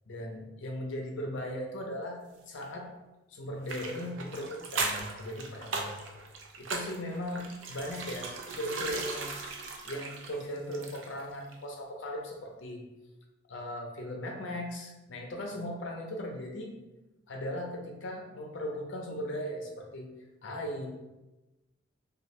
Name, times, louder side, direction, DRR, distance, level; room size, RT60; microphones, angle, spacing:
voice 1, 0.1-2.9 3.3-6.0 6.6-9.4 9.8-12.9 13.5-16.7 17.3-20.1 20.4-20.9, left 1 dB, 65° left, 1 dB, 0.6 m, -38 dB
sound 1, 3.7-11.3 11.5-11.6, right 4 dB, 65° right, 0.4 m, -38 dB
2.6 x 2.3 x 3.1 m, 1.0 s
head